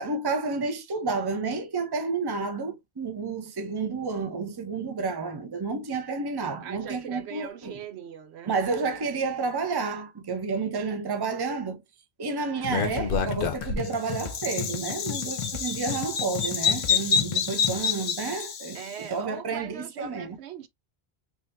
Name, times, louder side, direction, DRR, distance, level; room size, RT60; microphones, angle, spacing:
voice 1, 0.0-7.8 8.5-11.8 12.2-20.4, right 4 dB, 25° right, 0.6 m, -30 dB
voice 2, 6.6-8.5 18.7-20.7, right 8 dB, 85° right, 0.9 m, -40 dB
Bird vocalization bird call bird song, 12.6-18.9, left 6 dB, 60° left, 0.9 m, -28 dB
sound 1, 12.6-17.8, left 7 dB, 45° left, 0.4 m, -36 dB
3.9 x 3.0 x 2.6 m
omnidirectional pair, 1.1 m